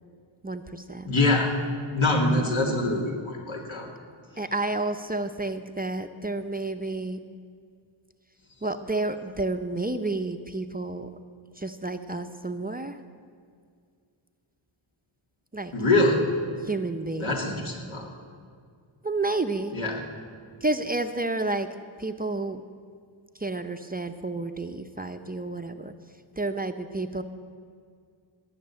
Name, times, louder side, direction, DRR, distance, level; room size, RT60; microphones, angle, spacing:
voice 1, 0.4-1.1 2.3-2.5 4.4-7.2 8.6-11.1 11.6-13.0 15.5-15.7 16.6-17.4 19.0-19.7 20.6-21.7 22.0-22.6 23.4-25.9 26.4-27.2, right 2 dB, 20° right, 7 dB, 0.6 m, -30 dB
voice 2, 1.1-1.5 1.9-3.9 15.7-16.2 17.2-18.1 19.7-20.0, left 2 dB, 75° left, 0 dB, 2.8 m, -24 dB
18.5 x 6.7 x 8.8 m, 2.2 s
wide cardioid pair, 85°, 48 cm